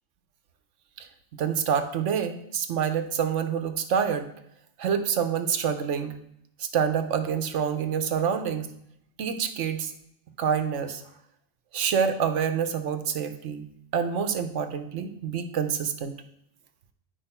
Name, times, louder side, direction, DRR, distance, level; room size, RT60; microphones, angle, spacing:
voice 1, 1.3-4.3 4.8-6.2 6.6-8.7 9.2-9.9 10.4-11.0 11.7-13.7 13.9-16.1, right 7 dB, 85° right, 8 dB, 1.1 m, -27 dB
8.8 x 5.1 x 4.3 m, 0.73 s
omnidirectional pair, 1.2 m